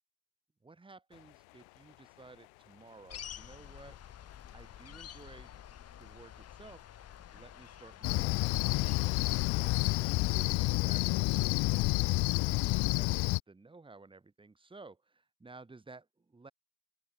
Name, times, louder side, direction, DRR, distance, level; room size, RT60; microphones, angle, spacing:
voice 1, 0.6-4.0 4.5-5.5 6.0-6.8 7.3-8.8 10.2-12.0 12.4-16.5, right 3 dB, 15° right, 2.9 m, -54 dB
sound 1, 1.1-13.3, left 37 dB, 80° left, 5.7 m, -60 dB
sound 2, 3.1-10.6, left 9 dB, 45° left, 3.8 m, -50 dB
Cricket, 8.0-13.4, left 22 dB, 60° left, 0.5 m, -29 dB
open air
supercardioid pair, 95°, 36 cm